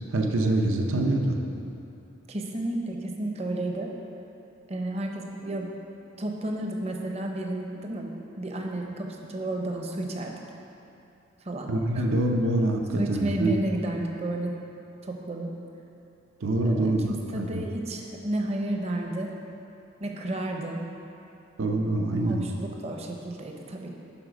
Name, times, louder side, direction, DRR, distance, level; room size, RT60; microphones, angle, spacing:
voice 1, 0.1-1.4 11.7-13.6 16.4-17.4 21.6-22.4, right 2 dB, 75° right, 3 dB, 0.6 m, -25 dB
voice 2, 2.3-3.9 4.7-5.7 6.2-8.1 8.4-10.3 11.4-12.0 13.0-14.5 15.0-15.5 16.6-19.3 20.0-20.8 22.2-23.9, right 1 dB, 30° right, 2 dB, 0.7 m, -32 dB
11.0 x 4.1 x 5.1 m, 2.8 s
head